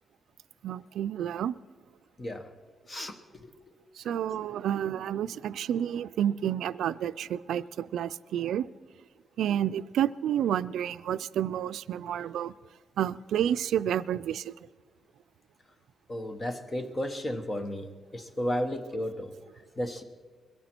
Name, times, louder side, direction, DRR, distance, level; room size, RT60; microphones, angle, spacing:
voice 1, 0.6-1.5 4.0-8.7 9.4-12.5 13.0-14.5, right 10 dB, 85° right, 16 dB, 0.3 m, -30 dB
voice 2, 2.2-2.5 2.9-3.7 16.1-19.3 19.8-20.0, equal, 20° left, 8 dB, 0.9 m, -34 dB
22.0 x 13.5 x 4.5 m, 1.5 s
wide cardioid pair, 170°, 0 cm